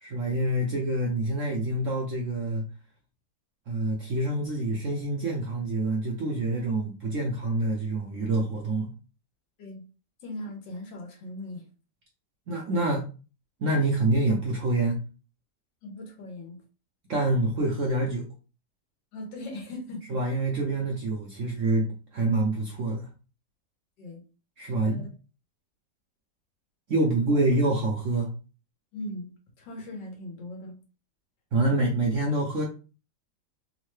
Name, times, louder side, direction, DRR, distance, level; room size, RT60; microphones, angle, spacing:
voice 1, 0.0-2.6 3.7-8.9 12.5-13.1 13.6-15.0 17.1-18.2 20.1-21.9 22.1-23.1 24.6-25.1 26.9-28.3 31.5-32.6, right 2 dB, 70° right, -1 dB, 0.7 m, -26 dB
voice 2, 10.2-11.7 15.8-16.6 19.1-20.2 24.0-24.2 24.8-25.1 27.0-27.4 28.9-29.3 29.6-30.8, left 1 dB, 85° left, 1 dB, 1.6 m, -39 dB
3.6 x 2.1 x 3.1 m, 0.34 s
omnidirectional pair, 2.0 m